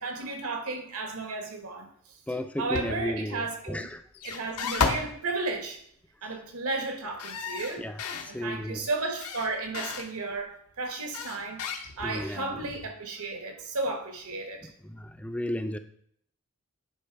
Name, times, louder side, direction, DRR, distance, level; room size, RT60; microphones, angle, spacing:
voice 1, 0.0-2.2 2.6-3.9 4.2-5.8 6.2-7.9 8.3-11.6 12.0-14.7, right 3 dB, 80° right, 4 dB, 1.4 m, -33 dB
voice 2, 2.3-4.0 7.8-7.9 8.2-8.8 12.0-12.5 14.8-15.8, left 1 dB, 5° left, 9 dB, 0.3 m, -33 dB
sound 1, 2.7-3.2 4.1-5.2 7.2-8.3 9.2-10.1 11.1-12.2, left 4 dB, 90° left, 0.9 m, -32 dB
9.8 x 3.3 x 4.7 m, 0.65 s
head